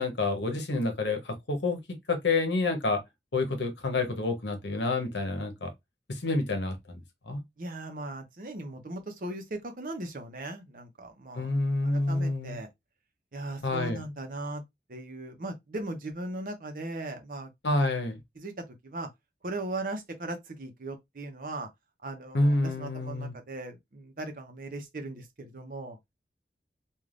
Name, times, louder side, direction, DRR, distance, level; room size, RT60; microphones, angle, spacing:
voice 1, 0.0-1.8 2.1-3.0 3.3-5.7 6.1-7.0 7.3-7.4 11.3-12.6 13.6-14.0 17.6-18.2 22.3-23.3, left 2 dB, 90° left, 0.9 m, -28 dB
voice 2, 7.6-11.5 11.8-12.7 13.3-14.6 14.9-17.5 18.4-19.1 19.4-21.7 22.0-26.0, right 2 dB, 50° right, 0.7 m, -38 dB
3.3 x 2.4 x 2.4 m
head